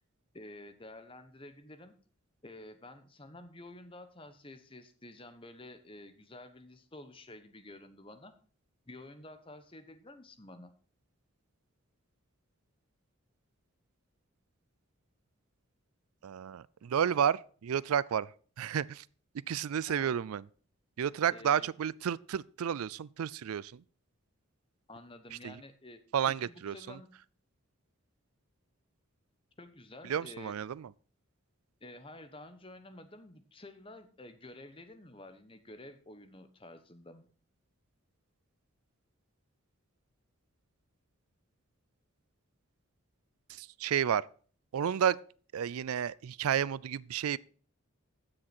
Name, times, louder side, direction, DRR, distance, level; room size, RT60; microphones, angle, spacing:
voice 1, 0.3-1.9 2.4-8.3 8.9-10.7 19.9-20.2 21.3-21.7 24.9-26.0 26.3-27.2 29.6-30.5 31.8-37.3, left 2 dB, 25° left, 1.1 m, -50 dB
voice 2, 16.2-18.3 18.6-19.0 19.5-20.4 21.0-23.8 25.4-25.5 26.1-27.0 30.1-30.9 43.5-44.3 44.7-45.2 45.5-47.4, right 8 dB, 85° right, 0.4 m, -31 dB
15.5 x 6.4 x 4.4 m
head